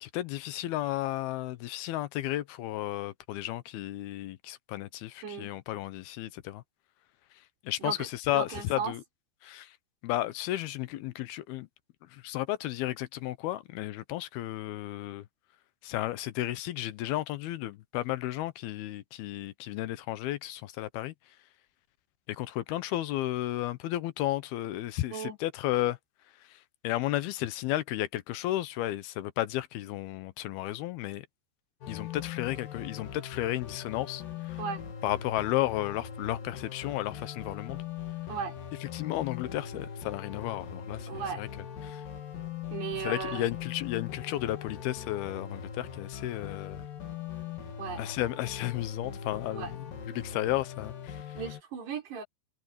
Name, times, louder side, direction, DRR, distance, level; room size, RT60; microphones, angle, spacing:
voice 1, 0.0-6.6 7.7-9.0 9.4-9.7 10.0-11.7 12.1-15.2 15.8-21.1 22.3-26.0 26.8-31.3 31.9-34.2 34.5-34.6 35.0-37.8 38.8-41.5 41.8-42.0 43.0-46.8 48.0-51.2, left 15 dB, 75° left, 2.7 m, -33 dB
voice 2, 8.3-8.9 25.1-25.4 34.6-34.8 38.3-38.5 41.1-41.4 42.7-43.5 47.8-48.0 49.5-49.7 51.4-52.2, right 6 dB, 80° right, 7.5 m, -36 dB
sound 1, 31.8-51.6, left 8 dB, 60° left, 4.0 m, -41 dB
omnidirectional pair, 4.7 m